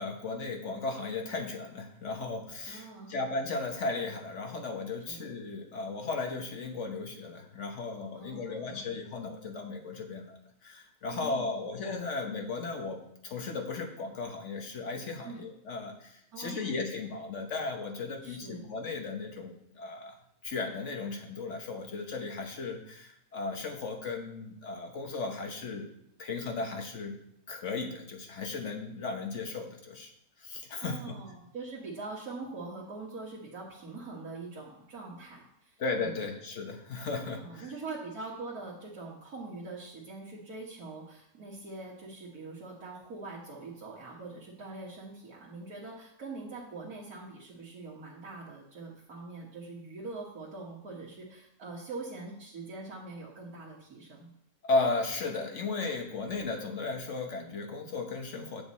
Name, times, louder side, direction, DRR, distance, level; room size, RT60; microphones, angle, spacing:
voice 1, 0.0-20.2 20.4-25.9 26.2-27.2 27.5-30.1 30.4-31.0 35.8-37.7 54.6-58.6, left 3 dB, 55° left, 3 dB, 1.3 m, -35 dB
voice 2, 2.7-3.5 5.0-5.2 8.1-8.9 11.1-11.7 15.2-15.4 16.3-16.7 18.2-18.7 30.8-36.2 37.4-54.3, right 3 dB, 80° right, -5 dB, 1.9 m, -43 dB
8.0 x 7.1 x 4.1 m, 0.74 s
omnidirectional pair, 1.5 m